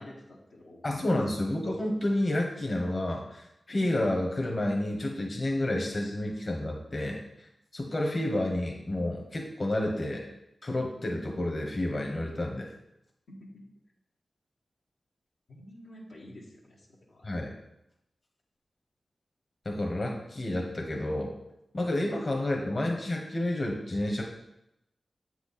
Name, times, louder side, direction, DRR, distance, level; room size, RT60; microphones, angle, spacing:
voice 1, 0.0-1.1 13.3-13.7 15.5-17.2, left 1 dB, 90° left, -4 dB, 1.4 m, -49 dB
voice 2, 0.8-7.2 7.7-10.3 10.6-12.7 17.2-17.5 19.6-21.3 21.7-24.2, left 1 dB, 50° left, 0 dB, 1.3 m, -30 dB
7.6 x 4.6 x 4.3 m, 0.84 s
cardioid pair, 40°, 0 cm